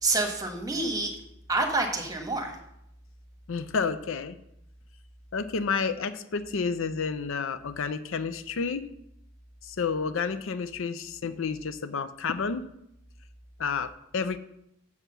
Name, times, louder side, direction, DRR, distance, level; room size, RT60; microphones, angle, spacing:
voice 1, 0.0-1.1 1.5-2.5, right 3 dB, 15° right, 2 dB, 1.3 m, -27 dB
voice 2, 3.5-4.4 5.3-8.9 9.6-12.6 13.6-14.4, left 5 dB, 65° left, 12 dB, 0.5 m, -30 dB
7.3 x 6.1 x 6.7 m, 0.79 s
head